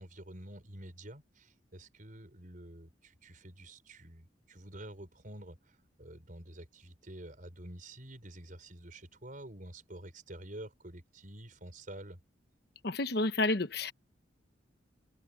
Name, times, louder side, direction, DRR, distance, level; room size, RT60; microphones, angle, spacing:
voice 1, 0.0-12.2, right 1 dB, 45° right, 5.4 m, -49 dB
voice 2, 12.8-13.9, left 2 dB, 60° left, 1.1 m, -30 dB
head